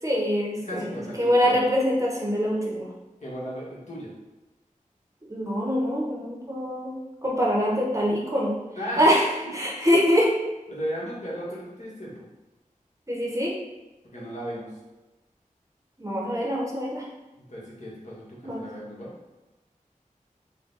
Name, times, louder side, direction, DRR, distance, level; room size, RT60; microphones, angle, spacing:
voice 1, 0.0-2.9 5.3-6.9 7.2-8.5 9.0-10.3 13.1-13.5 16.0-17.0 18.4-18.6, equal, 20° right, -3 dB, 0.8 m, -24 dB
voice 2, 0.6-1.5 3.2-4.1 8.8-9.0 10.7-12.3 14.0-14.7 17.4-19.1, equal, 55° left, -7 dB, 1.3 m, -35 dB
3.8 x 2.2 x 3.9 m, 1.1 s
wide cardioid pair, 65°, 14 cm